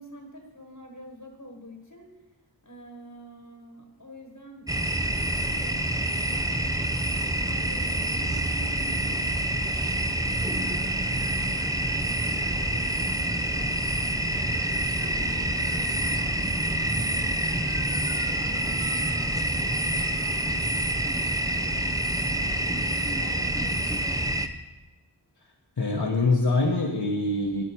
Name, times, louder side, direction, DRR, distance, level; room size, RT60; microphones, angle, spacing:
voice 1, 0.0-2.1 2.6-4.7 5.4-6.5 6.8-9.5 10.1-11.6 12.0-16.4 16.8-17.5 17.9-20.7 21.1-21.9 22.2-24.0, right 1 dB, 45° left, 2 dB, 1.5 m, -46 dB
sound 1, 4.7-24.5, right 1 dB, 10° right, 0.6 m, -27 dB
voice 2, 25.8-27.6, left 2 dB, 65° left, -2 dB, 1.2 m, -24 dB
10.5 x 9.9 x 4.6 m, 1.2 s
wide cardioid pair, 45°, 42 cm